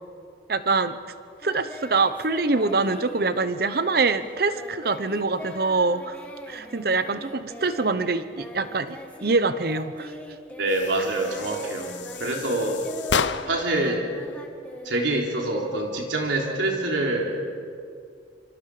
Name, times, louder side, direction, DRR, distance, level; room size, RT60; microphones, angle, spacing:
voice 1, 0.5-1.0 1.4-6.2 6.5-10.1, right 3 dB, 55° right, 12 dB, 0.9 m, -24 dB
Singing, 1.4-9.4 9.6-15.5, left 1 dB, 10° left, 1.9 m, -42 dB
voice 2, 10.6-11.9 12.2-12.8 13.5-14.0 14.8-17.4, right 2 dB, 90° right, 0 dB, 3.8 m, -25 dB
sound 1, 10.7-13.8, left 6 dB, 80° left, 0.8 m, -31 dB
26.5 x 25.0 x 5.0 m, 2.3 s
head